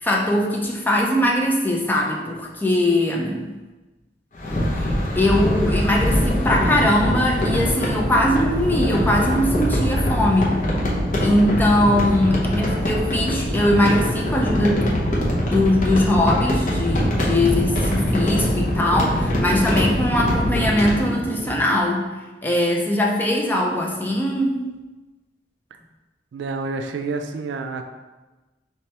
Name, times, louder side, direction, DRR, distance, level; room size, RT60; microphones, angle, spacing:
voice 1, 0.0-3.5 4.8-10.6 11.2-15.1 15.5-22.1 22.4-24.6, left 1 dB, 10° left, -1 dB, 0.4 m, -21 dB
sound 1, 4.3-21.0, equal, 45° left, 0.7 m, -23 dB
sound 2, 7.9-21.6, equal, 60° right, 0.9 m, -32 dB
voice 2, 26.3-27.9, right 3 dB, 80° right, 6 dB, 0.3 m, -28 dB
3.3 x 3.2 x 2.9 m, 1.2 s
head